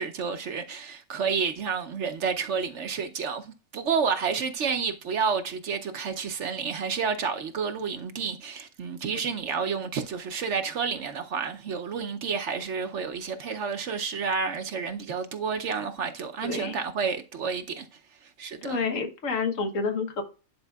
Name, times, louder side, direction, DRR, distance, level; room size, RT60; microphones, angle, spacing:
voice 1, 0.0-3.5 3.7-17.9 18.2-18.8, right 6 dB, 60° right, 1.0 m, -30 dB
voice 2, 16.4-16.8 18.6-20.2, left 4 dB, 65° left, 1.5 m, -29 dB
10.5 x 4.8 x 2.3 m
omnidirectional pair, 1.5 m